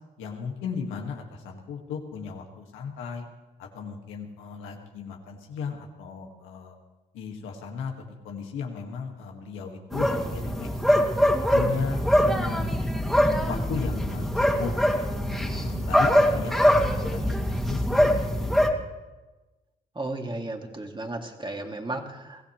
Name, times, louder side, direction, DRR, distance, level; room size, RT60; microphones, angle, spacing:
voice 1, 0.2-3.2 3.6-6.7 7.1-11.1 11.5-12.7 13.5-14.7 15.3-18.8, left 6 dB, 85° left, 2 dB, 2.0 m, -36 dB
sound 1, 9.9-18.7, equal, ahead, 2.6 m, -23 dB
voice 2, 20.0-22.4, right 2 dB, 25° right, 3 dB, 2.7 m, -34 dB
23.0 x 16.0 x 3.3 m, 1.1 s
supercardioid pair, 50°, 20 cm